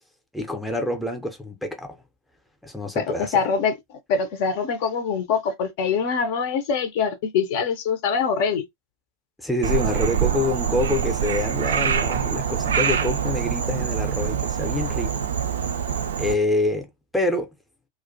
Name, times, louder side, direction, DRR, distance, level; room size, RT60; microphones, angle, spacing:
voice 1, 0.3-2.0 2.6-3.4 9.4-15.2 16.2-17.5, left 2 dB, 5° left, 0.5 m, -26 dB
voice 2, 2.9-3.8 4.1-8.6, left 6 dB, 50° left, 0.5 m, -24 dB
Frog, 9.6-16.3, right 8 dB, 65° right, 0.3 m, -25 dB
2.4 x 2.1 x 2.5 m
figure-of-eight pair, 90°, 0 cm